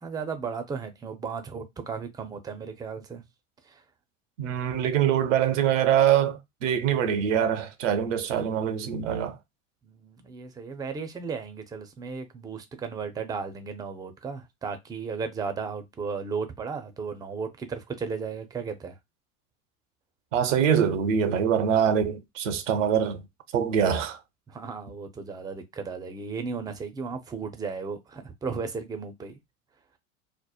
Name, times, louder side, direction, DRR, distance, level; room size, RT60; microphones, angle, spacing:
voice 1, 0.0-3.2 3.7-3.8 9.8-19.0 24.5-29.4, right 5 dB, 10° right, 0.4 m, -35 dB
voice 2, 4.4-9.4 20.3-23.2 23.5-24.2, right 8 dB, 85° right, 0.6 m, -24 dB
2.9 x 2.0 x 2.3 m
hypercardioid pair, 90°, 37 cm